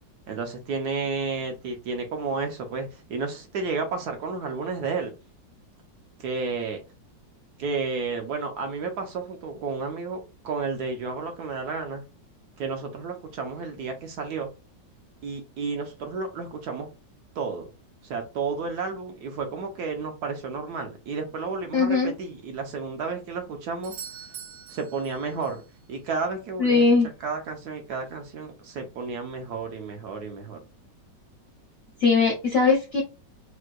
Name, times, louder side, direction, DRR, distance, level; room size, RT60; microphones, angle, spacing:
voice 1, 0.3-5.1 6.2-6.8 7.6-12.0 12.6-14.5 15.2-16.9 17.4-17.7 18.0-24.0 24.7-25.6 25.9-30.6, right 4 dB, 70° right, 4 dB, 1.1 m, -32 dB
voice 2, 21.7-22.1 26.6-27.1 32.0-33.0, left 4 dB, 50° left, -2 dB, 0.8 m, -20 dB
Doorbell, 23.8-25.7 29.7-29.8, right 8 dB, 85° right, 1.8 m, -43 dB
4.4 x 2.2 x 2.4 m, 0.29 s
omnidirectional pair, 2.0 m